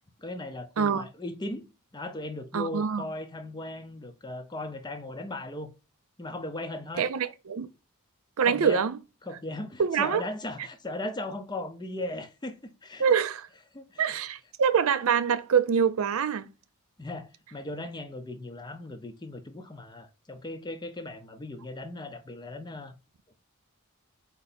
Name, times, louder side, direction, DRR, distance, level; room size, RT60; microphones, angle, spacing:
voice 1, 0.2-1.7 1.9-5.7 6.2-7.1 8.4-8.8 9.2-13.1 13.7-14.2 17.0-22.9, left 2 dB, 20° left, 0.5 m, -37 dB
voice 2, 2.5-3.0 7.0-7.7 8.4-9.0 9.8-10.2 13.0-13.5 14.0-16.5, right 7 dB, 70° right, 0.5 m, -25 dB
4.4 x 2.8 x 4.0 m
head